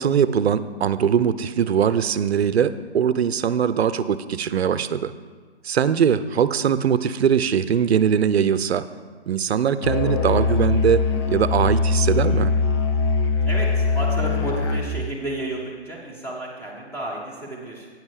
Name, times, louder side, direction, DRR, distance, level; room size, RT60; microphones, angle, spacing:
voice 1, 0.0-5.1 5.6-8.9 9.3-11.0 11.3-12.5, right 8 dB, 65° right, 14 dB, 0.6 m, -21 dB
Musical instrument, 9.8-15.0, left 4 dB, 25° left, 0.6 m, -21 dB
voice 2, 13.4-17.9, right 1 dB, 5° left, -4 dB, 1.5 m, -32 dB
9.3 x 7.4 x 4.8 m, 1.5 s
figure-of-eight pair, 135°, 34 cm